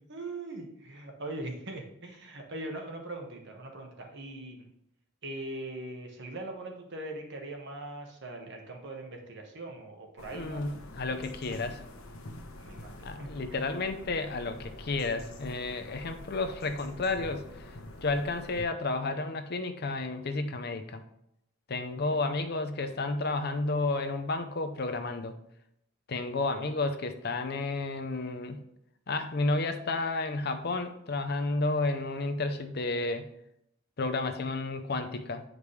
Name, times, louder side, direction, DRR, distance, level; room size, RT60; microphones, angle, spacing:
voice 1, 0.0-4.7 5.2-10.6 12.6-13.6 21.9-22.3, right 2 dB, 55° right, 2 dB, 1.3 m, -41 dB
sound 1, 10.2-18.7, left 1 dB, 85° left, 1.0 m, -46 dB
voice 2, 10.3-11.8 13.0-17.4 18.0-21.0 21.7-25.3 26.1-28.6 29.1-33.3 34.0-35.4, left 3 dB, 50° left, 8 dB, 0.6 m, -31 dB
8.4 x 5.1 x 3.2 m, 0.77 s
head